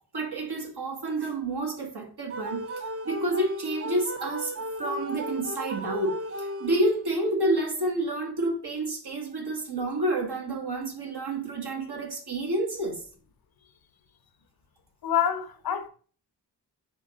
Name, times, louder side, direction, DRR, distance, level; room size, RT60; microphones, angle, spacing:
voice 1, 0.1-13.0, right 1 dB, 65° right, 1.3 m, -29 dB
sound 1, 2.3-7.2, equal, 35° right, 0.7 m, -35 dB
voice 2, 15.0-15.9, left 9 dB, 60° left, 0.7 m, -26 dB
3.6 x 3.6 x 3.8 m
cardioid pair, 40°, 41 cm